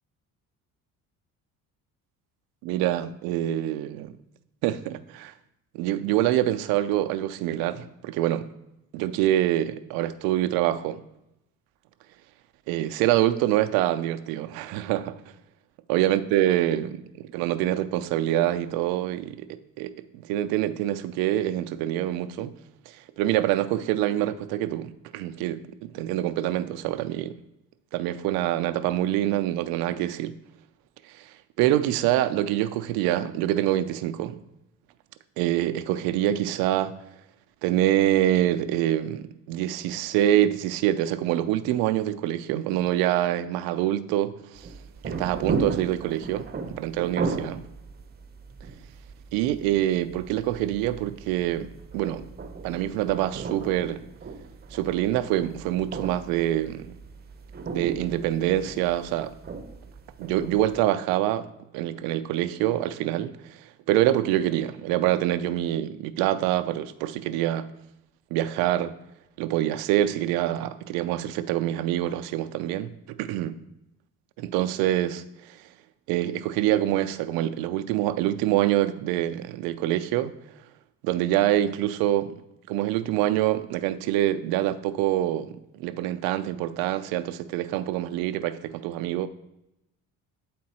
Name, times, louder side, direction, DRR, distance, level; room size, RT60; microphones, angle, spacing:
voice 1, 2.6-4.2 4.6-5.3 5.7-8.5 8.9-11.0 12.7-15.2 15.9-22.5 22.9-27.3 27.9-30.3 31.1-31.3 31.6-34.4 35.4-37.0 37.6-44.7 45.0-47.7 49.3-52.2 52.6-54.0 54.7-57.0 57.7-59.3 60.2-67.7 68.3-69.0 69.4-73.6 74.4-75.6 76.1-80.3 81.0-82.4 82.7-89.3, right 13 dB, 85° right, 0.5 m, -25 dB
sound 1, 44.6-60.8, right 4 dB, 25° right, 0.7 m, -36 dB
8.5 x 3.8 x 4.2 m
cardioid pair, 90°, 35 cm